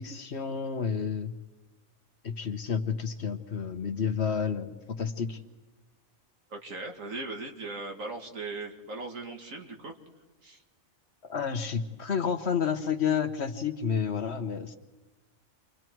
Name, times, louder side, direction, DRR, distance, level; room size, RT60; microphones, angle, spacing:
voice 1, 0.0-1.3 2.2-5.4 11.3-14.8, left 6 dB, 55° left, 8 dB, 1.3 m, -30 dB
voice 2, 6.5-10.0 10.4-10.6, right 3 dB, 70° right, 3 dB, 2.5 m, -38 dB
29.5 x 24.5 x 4.6 m, 1.2 s
omnidirectional pair, 1.4 m